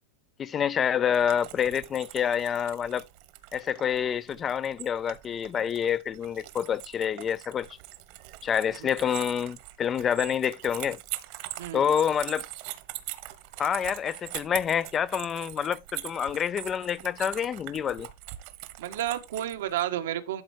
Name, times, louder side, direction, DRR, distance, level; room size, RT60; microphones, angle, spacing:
voice 1, 0.4-3.0 3.5-7.7 8.4-11.0 11.7-12.5 13.6-18.1, left 8 dB, 20° left, 0.5 m, -27 dB
sound 1, 1.1-19.8, right 16 dB, 50° right, 1.4 m, -42 dB
voice 2, 11.6-11.9 18.8-20.4, right 12 dB, 80° right, 1.6 m, -31 dB
12.0 x 4.6 x 4.5 m
supercardioid pair, 150°, 0 cm